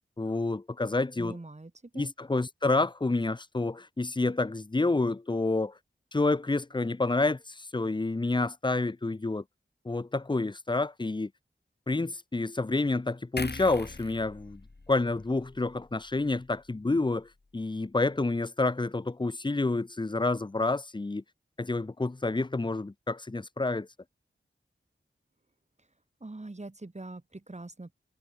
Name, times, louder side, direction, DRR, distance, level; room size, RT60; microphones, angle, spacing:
voice 1, 0.2-1.4 1.9-5.7 6.1-9.4 9.8-11.3 11.9-14.6 14.9-21.2 21.6-23.9, left 2 dB, 20° left, 0.6 m, -29 dB
voice 2, 1.2-2.1 26.2-27.9, right 2 dB, 35° right, 1.8 m, -43 dB
sound 1, 13.4-16.7 17.1-17.3, left 3 dB, 55° left, 3.7 m, -42 dB
wide cardioid pair, 40°, 21 cm